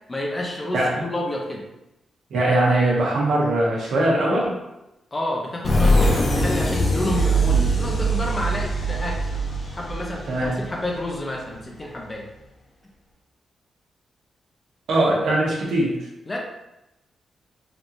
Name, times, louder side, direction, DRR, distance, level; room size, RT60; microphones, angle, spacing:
voice 1, 0.1-1.6 5.1-9.3 9.7-12.3 16.3-16.4, left 1 dB, 20° left, -1 dB, 0.5 m, -29 dB
voice 2, 2.3-4.5 10.3-10.6 14.9-15.9, right 1 dB, 80° right, -4 dB, 1.0 m, -21 dB
sound 1, 5.6-11.2, right 1 dB, 50° left, 0.8 m, -22 dB
3.5 x 2.9 x 2.5 m, 0.92 s
wide cardioid pair, 145°, 0 cm